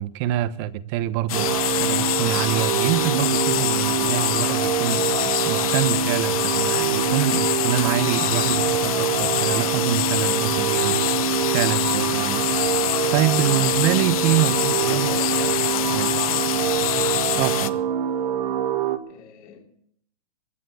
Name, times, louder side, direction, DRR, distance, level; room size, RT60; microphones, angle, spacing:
voice 1, 0.0-12.7 13.1-15.1 15.9-16.1 17.3-17.8, right 13 dB, 45° right, 1.0 m, -26 dB
sound 1, 1.3-17.7, left 13 dB, 60° left, 0.9 m, -25 dB
sound 2, 1.3-19.0, right 9 dB, 65° right, 1.5 m, -25 dB
voice 2, 14.4-15.6 19.1-19.6, left 5 dB, 40° left, 3.1 m, -39 dB
22.5 x 7.5 x 7.0 m
hypercardioid pair, 135°, 20 cm